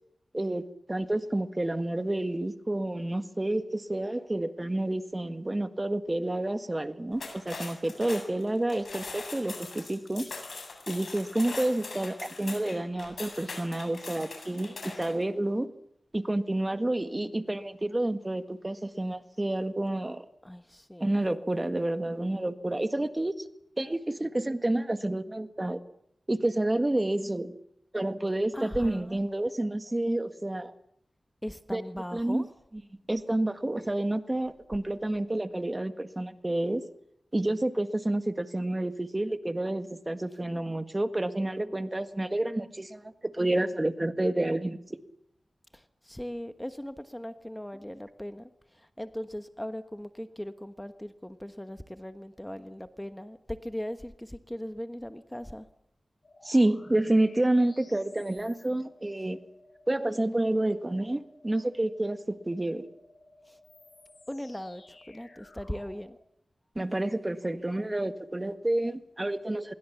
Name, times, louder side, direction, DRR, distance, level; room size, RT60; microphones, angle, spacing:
voice 1, 0.9-10.3 10.9-15.7 16.1-20.2 21.0-23.3 23.8-25.8 26.3-27.5 27.9-30.7 31.7-31.8 32.1-32.5 33.1-36.8 37.3-44.8 56.4-59.4 59.9-62.2 62.5-62.8 66.7-69.7, right 1 dB, 25° right, 10 dB, 1.7 m, -29 dB
sound 1, 7.1-15.2, left 3 dB, 70° left, 7.7 m, -41 dB
voice 2, 20.4-21.2 28.5-29.2 31.4-32.5 41.6-41.8 45.7-55.7 63.5-63.6 64.3-66.2, equal, 10° left, 9 dB, 1.2 m, -39 dB
sound 2, 56.2-66.1, left 2 dB, 55° left, 6.5 m, -56 dB
25.5 x 22.0 x 7.2 m, 0.75 s
wide cardioid pair, 80°, 0 cm